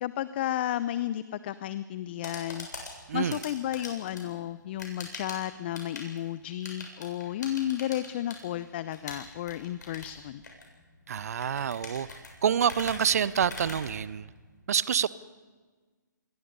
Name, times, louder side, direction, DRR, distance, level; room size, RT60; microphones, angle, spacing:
voice 1, 0.0-2.7 3.1-10.4, left 12 dB, 35° left, 15 dB, 0.7 m, -33 dB
sound 1, 2.0-14.6, left 3 dB, 65° left, 7.6 m, -44 dB
voice 2, 3.1-3.4 11.1-12.1 12.4-14.3 14.7-15.1, right 8 dB, 50° right, 19 dB, 0.8 m, -27 dB
27.5 x 22.0 x 5.4 m, 1.4 s
figure-of-eight pair, 135°, 10 cm